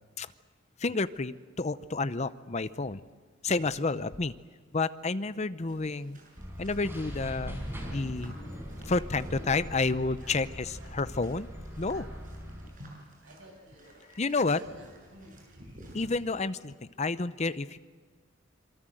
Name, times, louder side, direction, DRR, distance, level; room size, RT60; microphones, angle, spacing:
voice 1, 0.8-3.0 3.4-4.3 4.7-6.2 6.6-8.3 8.9-11.5 11.8-12.1 14.2-14.6 15.9-17.8, left 3 dB, 35° left, 14 dB, 0.7 m, -30 dB
sound 1, 5.7-16.3, right 1 dB, 45° right, 7.3 m, -56 dB
sound 2, 6.4-12.7, equal, 10° right, 5.0 m, -41 dB
voice 2, 8.9-9.3 9.7-10.4 10.8-10.9 11.9-14.0 14.4-15.4, right 1 dB, 85° right, 2 dB, 7.5 m, -52 dB
26.5 x 23.5 x 7.8 m, 1.5 s
head